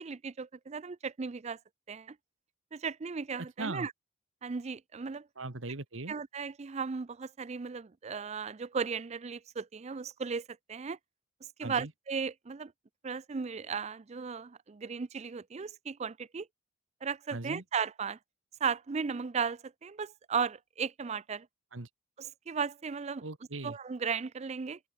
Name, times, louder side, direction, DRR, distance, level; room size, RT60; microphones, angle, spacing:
voice 1, 0.0-1.6 1.9-2.2 2.7-3.9 4.4-5.3 6.1-11.0 11.6-12.7 13.0-16.5 17.0-18.2 18.6-21.5 22.2-23.2 23.6-24.8, right 5 dB, 35° right, 0.4 m, -36 dB
voice 2, 5.4-6.1 11.6-11.9 17.3-17.6 21.7-21.9 23.2-23.8, right 2 dB, 70° right, 1.6 m, -39 dB
open air
head